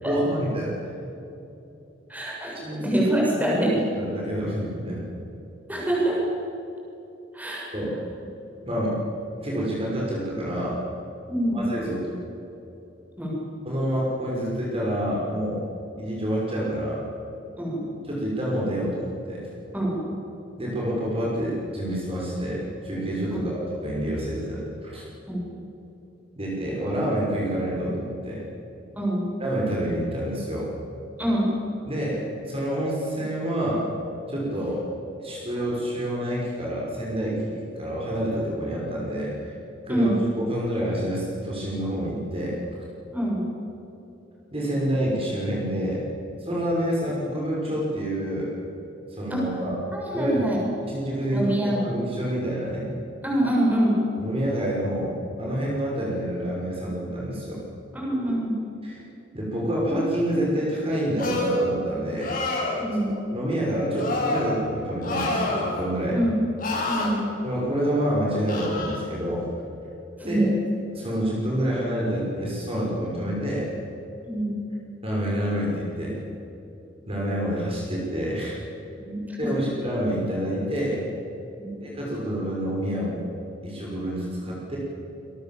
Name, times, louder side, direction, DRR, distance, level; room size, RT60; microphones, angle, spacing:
voice 1, 0.0-0.9 2.6-3.0 3.4-3.6 4.0-5.1 7.7-7.9 8.7-9.0 9.4-10.8 11.5-12.1 13.6-15.6 16.0-17.0 18.0-19.5 20.6-25.0 26.4-28.4 29.4-30.7 31.8-33.8 34.3-34.8 35.2-39.5 39.8-40.1 40.4-42.5 44.5-46.0 46.4-48.5 49.2-49.8 50.1-50.6 50.9-52.9 54.2-57.6 58.8-59.0 59.3-62.3 63.1-66.2 67.4-69.5 70.2-70.5 70.9-73.7 75.0-76.2 77.1-78.6 79.4-81.0 81.8-83.2 83.6-84.8, equal, 30° right, -4 dB, 5.9 m, -28 dB
voice 2, 2.1-3.8 4.2-4.3 5.7-6.2 7.3-7.7 11.3-11.6 13.2-13.4 17.6-17.8 19.7-20.0 23.3-23.4 25.3-25.5 29.0-29.3 31.2-31.5 39.9-40.2 43.1-43.4 49.3-49.5 49.9-50.6 51.3-51.9 53.2-54.0 57.9-58.5 62.8-63.1 66.1-66.4 66.9-67.3 70.2-70.5 74.2-74.5 79.0-79.7 81.6-81.7, right 1 dB, 10° right, -3 dB, 7.2 m, -25 dB
sound 1, 61.2-61.7 62.2-62.8 64.0-64.5 65.0-65.9 66.6-67.1 68.5-69.0, left 2 dB, 50° left, 7.1 m, -27 dB
27.5 x 22.0 x 7.7 m, 2.9 s
head